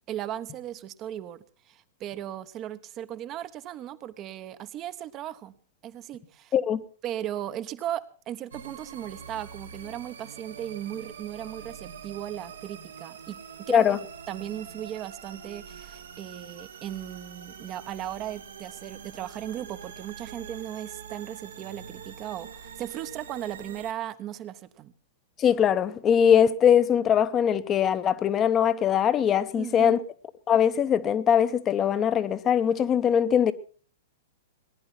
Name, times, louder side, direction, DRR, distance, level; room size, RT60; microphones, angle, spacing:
voice 1, 0.0-5.5 5.8-6.5 7.0-13.4 13.7-14.0 14.3-24.9 29.5-30.0, right 11 dB, 30° right, 1.0 m, -37 dB
sound 1, 8.5-23.9, right 7 dB, 65° right, 1.5 m, -44 dB
voice 2, 25.4-30.0 30.5-33.5, left 8 dB, 25° left, 1.0 m, -21 dB
19.0 x 11.0 x 5.9 m
figure-of-eight pair, 105°, 0 cm